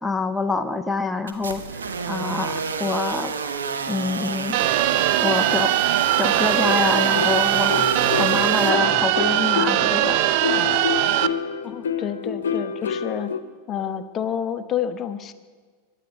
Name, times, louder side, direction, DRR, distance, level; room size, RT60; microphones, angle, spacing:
voice 1, 0.0-3.3 3.9-4.6 5.2-5.7 6.2-10.2, left 3 dB, 5° left, 6 dB, 0.9 m, -26 dB
sound 1, 1.3-8.7, right 5 dB, 80° right, 1.2 m, -29 dB
sound 2, 4.5-11.3, right 14 dB, 55° right, 0.6 m, -21 dB
sound 3, 6.6-13.4, left 6 dB, 75° left, 1.0 m, -28 dB
voice 2, 11.6-13.3 13.7-15.3, left 9 dB, 35° left, 11 dB, 1.0 m, -29 dB
23.5 x 11.0 x 5.3 m, 1.6 s
hypercardioid pair, 95°, 0 cm